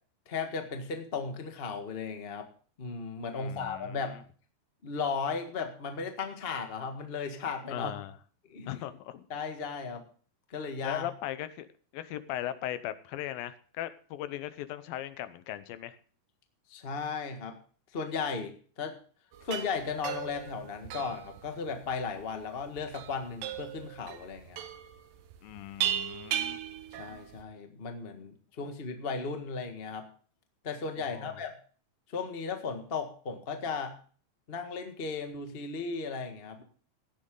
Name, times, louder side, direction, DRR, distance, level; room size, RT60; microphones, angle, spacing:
voice 1, 0.3-2.5 2.8-4.2 4.8-7.9 8.5-8.8 9.3-10.0 10.5-11.1 16.7-17.6 17.9-19.0 19.4-24.6 27.0-30.1 30.6-31.6 32.1-34.0 34.5-36.6, left 5 dB, 50° left, 5 dB, 0.6 m, -36 dB
voice 2, 3.3-4.2 7.7-8.1 8.7-9.2 10.8-11.7 11.9-16.0 25.4-26.6 31.0-31.4, left 13 dB, 85° left, 13 dB, 2.7 m, -38 dB
sound 1, 19.3-27.4, right 10 dB, 80° right, 2.8 m, -37 dB
15.5 x 10.5 x 3.8 m, 0.42 s
omnidirectional pair, 4.0 m